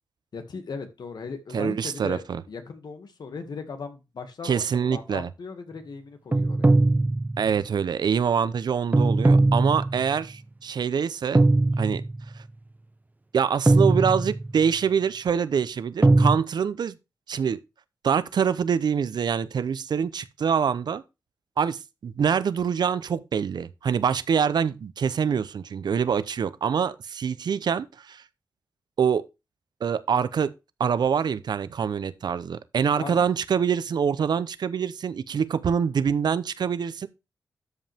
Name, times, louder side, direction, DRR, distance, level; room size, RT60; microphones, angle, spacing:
voice 1, 0.3-6.7 32.9-33.3, left 5 dB, 75° left, 2.0 m, -38 dB
voice 2, 1.5-2.4 4.4-5.3 7.4-11.4 11.8-12.0 13.3-17.0 17.3-17.6 18.0-21.0 21.6-28.2 29.0-29.2 29.8-30.5 30.8-37.1, right 7 dB, 75° right, 0.7 m, -25 dB
sound 1, 6.3-7.6 8.9-10.2 11.3-12.3 13.7-14.6 16.0-16.4, right 2 dB, 25° right, 0.7 m, -20 dB
12.5 x 5.4 x 3.5 m
cardioid pair, 70°, 7 cm